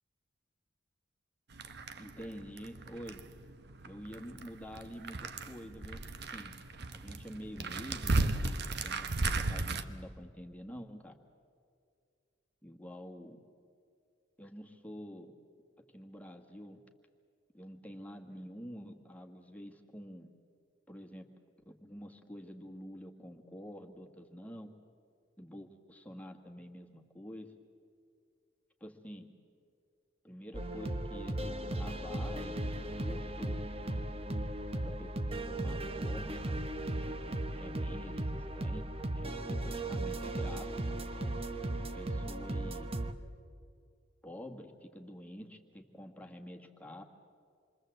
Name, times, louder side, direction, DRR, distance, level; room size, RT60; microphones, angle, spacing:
sound 1, 1.5-9.8, right 2 dB, 60° right, 1.2 m, -36 dB
voice 1, 2.0-3.2 3.8-6.0 6.3-6.5 6.9-11.1 12.6-13.4 14.4-15.3 15.9-16.8 17.5-20.3 20.9-21.3 21.7-24.7 25.4-27.5 28.8-29.3 30.2-33.6 34.8-36.6 37.0-38.9 39.1-40.7 41.8-42.9 44.2-47.0, equal, 10° left, 2 dB, 1.8 m, -48 dB
sound 2, 30.5-43.1, right 1 dB, 30° right, 1.1 m, -36 dB
27.5 x 23.5 x 7.9 m, 2.4 s
head